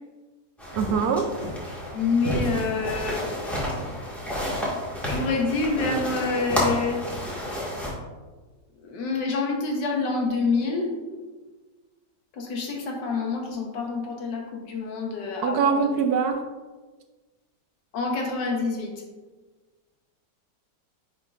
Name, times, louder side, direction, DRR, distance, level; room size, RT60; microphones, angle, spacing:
sound 1, 0.6-7.9, equal, ahead, 1.5 m, -30 dB
voice 1, 0.7-1.2 15.4-16.4, right 6 dB, 70° right, 6 dB, 1.0 m, -23 dB
voice 2, 1.9-3.3 5.1-7.1 8.8-10.9 12.3-16.0 17.9-18.9, left 4 dB, 80° left, 1 dB, 1.7 m, -27 dB
10.0 x 4.4 x 2.5 m, 1.3 s
omnidirectional pair, 1.9 m